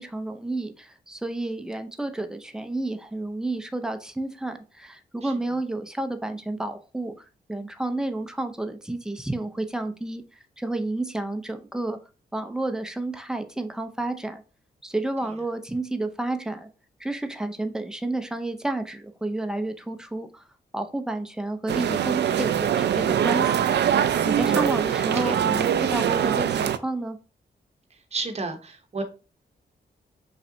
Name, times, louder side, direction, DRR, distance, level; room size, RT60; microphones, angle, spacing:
voice 1, 0.0-7.1 7.5-10.2 10.6-12.0 12.3-14.4 14.8-16.7 17.0-20.4 20.7-23.7 24.2-27.2, right 2 dB, 5° right, 0.5 m, -30 dB
sound 1, 21.7-26.8, right 9 dB, 80° right, 0.4 m, -23 dB
voice 2, 25.0-25.4 28.1-29.0, right 3 dB, 35° right, 0.8 m, -33 dB
5.5 x 3.2 x 2.6 m
wide cardioid pair, 110°, 18 cm